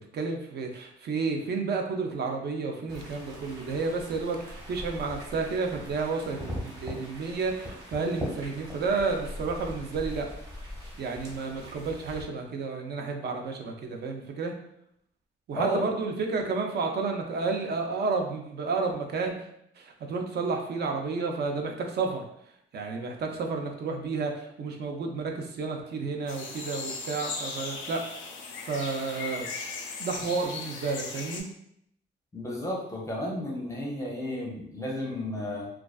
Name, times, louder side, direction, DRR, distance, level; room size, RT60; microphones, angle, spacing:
voice 1, 0.1-10.3 11.0-14.5 15.5-19.5 19.8-22.2 22.7-28.0 28.6-29.5 30.0-31.5, right 4 dB, 55° right, 3 dB, 0.5 m, -31 dB
sound 1, 2.9-12.2, left 1 dB, 20° right, 1.0 m, -41 dB
voice 2, 15.5-15.9 32.3-35.7, equal, 15° left, -3 dB, 0.6 m, -32 dB
sound 2, 26.3-31.4, left 4 dB, 80° left, 0.5 m, -37 dB
2.3 x 2.3 x 2.3 m, 0.74 s
cardioid pair, 90°, 20 cm